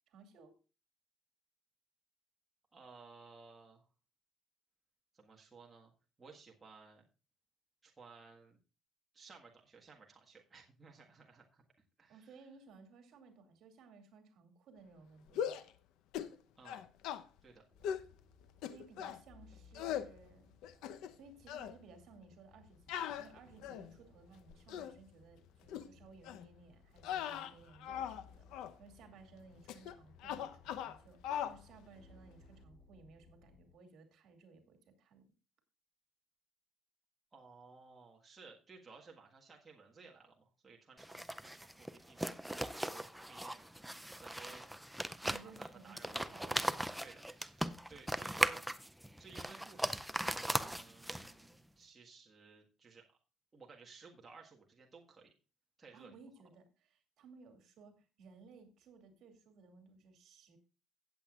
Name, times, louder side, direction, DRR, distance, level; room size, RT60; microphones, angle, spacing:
voice 1, 0.1-0.6 12.1-15.7 18.7-20.5 21.1-28.5 28.8-35.2 45.2-47.0 55.9-60.6, right 4 dB, 60° right, 5 dB, 2.6 m, -59 dB
voice 2, 2.7-3.9 5.1-5.9 6.2-7.0 7.8-8.6 9.1-11.6 12.0-12.4 16.6-16.9 17.4-17.6 37.3-44.7 45.3-46.3 46.6-48.6 49.2-53.2 53.5-55.3 55.8-56.2, right 4 dB, 20° right, -1 dB, 1.6 m, -58 dB
sound 1, 15.3-15.7 16.1-16.4 16.6-17.2 17.8-18.1 18.6-19.2 19.7-20.1 20.6-21.2 21.5-21.7 22.9-23.9 24.5-24.9 25.7-25.9 26.2-26.5 27.0-28.2 28.5-28.7 29.7-29.9 30.2-31.0 31.2-31.6, left 9 dB, 90° left, 0.8 m, -40 dB
sound 2, 17.7-33.7, left 4 dB, 15° left, 2.9 m, -63 dB
sound 3, 41.0-51.5, right 1 dB, ahead, 0.4 m, -39 dB
16.5 x 7.9 x 2.4 m, 0.33 s
cardioid pair, 150°, 0 cm